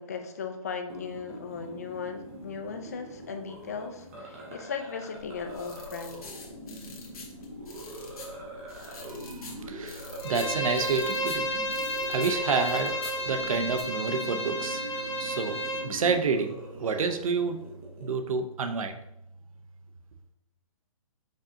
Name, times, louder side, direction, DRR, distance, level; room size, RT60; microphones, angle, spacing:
voice 1, 0.0-6.3, left 5 dB, 30° left, 6 dB, 0.4 m, -37 dB
sound 1, 0.9-18.1, right 1 dB, 25° right, 0.8 m, -43 dB
sound 2, 5.2-13.8, left 4 dB, 85° left, 1.4 m, -47 dB
voice 2, 9.0-11.5 12.1-13.0 13.2-14.8 15.2-17.6 18.0-19.0, right 5 dB, 70° right, 7 dB, 0.7 m, -29 dB
Bowed string instrument, 10.2-15.9, equal, 50° left, 1.2 m, -32 dB
5.3 x 3.6 x 2.7 m, 0.81 s
hypercardioid pair, 175°, 18 cm